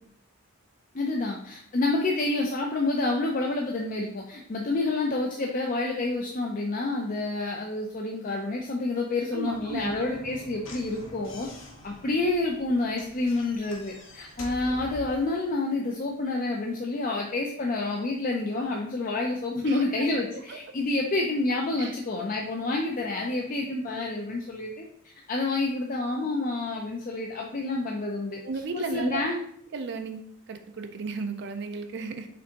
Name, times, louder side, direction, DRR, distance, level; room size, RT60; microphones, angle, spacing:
voice 1, 0.9-11.5 11.8-24.8 25.3-28.4 28.7-29.4, left 2 dB, 40° left, 0 dB, 0.5 m, -28 dB
voice 2, 9.3-9.9 19.7-20.1 20.5-20.6 21.8-22.0 28.4-29.2 29.7-32.3, right 4 dB, 50° right, 7 dB, 0.4 m, -35 dB
Slam / Knock, 9.5-15.3, left 1 dB, 60° left, 0.9 m, -45 dB
5.1 x 3.4 x 2.8 m, 0.66 s
head